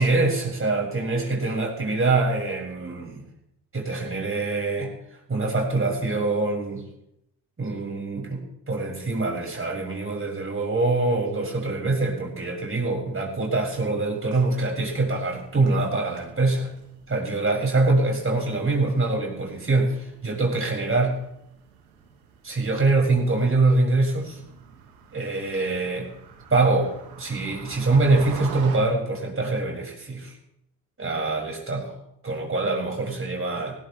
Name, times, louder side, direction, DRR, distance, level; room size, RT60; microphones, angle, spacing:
voice 1, 0.0-3.2 3.7-6.8 7.6-16.7 17.1-21.1 22.4-24.4 25.1-26.1 26.5-26.9 27.2-30.3 31.0-31.9 32.2-33.8, right 3 dB, 30° right, 0 dB, 7.3 m, -24 dB
sound 1, 14.2-28.8, right 6 dB, 85° right, 2.5 m, -46 dB
21.0 x 18.0 x 3.6 m, 0.77 s
hypercardioid pair, 55°, 45 cm